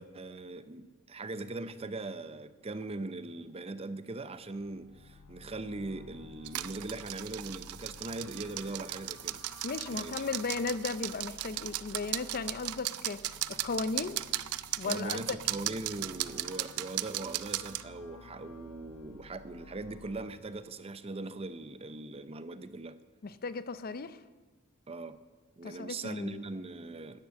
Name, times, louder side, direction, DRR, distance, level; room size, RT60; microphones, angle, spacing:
voice 1, 0.0-9.4 9.9-10.3 14.8-23.0 24.9-25.2 25.6-27.2, right 2 dB, 25° right, 13 dB, 0.6 m, -40 dB
sound 1, 4.4-20.2, left 4 dB, 90° left, 0.7 m, -54 dB
sound 2, 6.4-17.8, right 15 dB, 80° right, 0.5 m, -37 dB
voice 2, 9.6-13.2 13.5-14.2 14.8-15.2 23.2-24.2 25.6-26.4, left 4 dB, 45° left, 14 dB, 0.5 m, -36 dB
11.0 x 10.5 x 7.5 m, 1.3 s
head